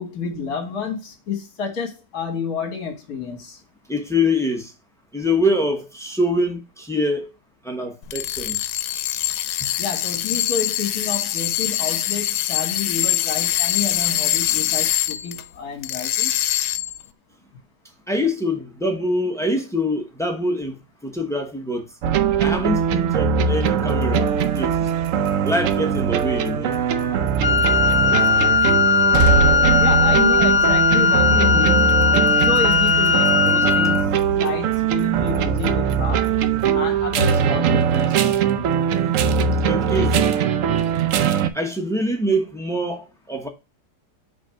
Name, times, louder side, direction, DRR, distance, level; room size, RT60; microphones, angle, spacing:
voice 1, 0.0-3.6 9.8-16.3 29.8-36.3 36.7-38.3, left 5 dB, 60° left, 1.7 m, -29 dB
voice 2, 3.9-4.7 5.1-7.3 7.6-8.6 9.6-9.7 18.1-21.9 22.4-24.9 25.4-26.8 39.7-40.3 41.5-43.5, left 1 dB, 5° left, 0.4 m, -24 dB
sound 1, 8.0-15.4 15.8-17.0, left 13 dB, 80° left, 1.2 m, -23 dB
sound 2, 22.0-41.5, right 7 dB, 70° right, 0.7 m, -20 dB
Wind instrument woodwind instrument, 27.4-34.1, left 5 dB, 25° left, 1.1 m, -18 dB
5.2 x 3.3 x 5.5 m
omnidirectional pair, 1.9 m